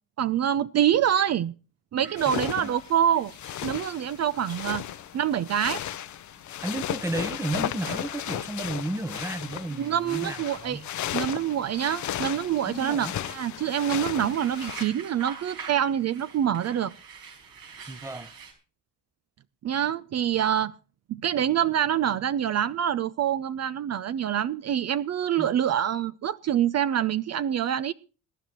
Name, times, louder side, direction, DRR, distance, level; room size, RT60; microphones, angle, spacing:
voice 1, 0.2-1.5 1.9-3.3 3.6-4.8 5.1-5.8 9.7-10.8 11.1-16.9 19.6-20.7 21.1-27.9, right 10 dB, 45° right, 0.5 m, -26 dB
sound 1, 2.0-18.5, right 6 dB, 80° right, 5.0 m, -48 dB
sound 2, 2.2-14.8, left 12 dB, 55° left, 0.7 m, -35 dB
voice 2, 2.3-2.7 6.6-10.9 12.6-13.1 17.9-18.3 25.4-25.5, right 2 dB, 10° right, 0.8 m, -33 dB
22.0 x 10.5 x 3.0 m
cardioid pair, 90°, 36 cm